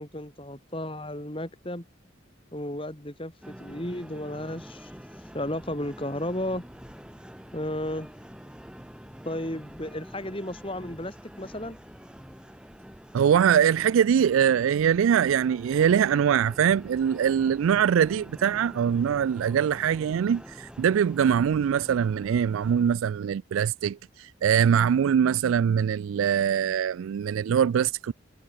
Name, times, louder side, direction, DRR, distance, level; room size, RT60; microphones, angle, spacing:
voice 1, 0.0-1.9 2.5-4.9 5.3-6.6 7.5-8.1 9.2-11.8, left 1 dB, 25° left, 3.9 m, -33 dB
sound 1, 3.4-22.9, equal, 5° right, 4.9 m, -46 dB
voice 2, 13.1-28.1, right 8 dB, 85° right, 0.3 m, -23 dB
head